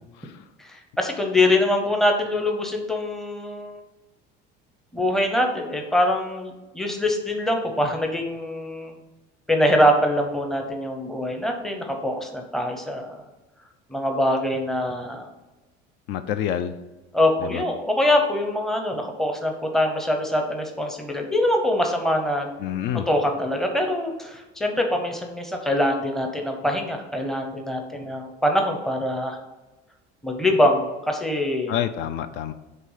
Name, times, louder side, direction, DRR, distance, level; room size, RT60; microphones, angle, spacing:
voice 1, 0.0-0.5 16.1-16.8 17.4-17.6 22.6-23.1 31.7-32.5, left 10 dB, 60° left, 11 dB, 0.5 m, -28 dB
voice 2, 0.6-3.8 4.9-9.0 9.5-13.2 13.9-15.3 17.1-22.5 23.1-29.4 30.2-31.7, left 1 dB, ahead, 2 dB, 0.7 m, -24 dB
7.9 x 3.3 x 5.5 m, 1.1 s
cardioid pair, 170°, 20 cm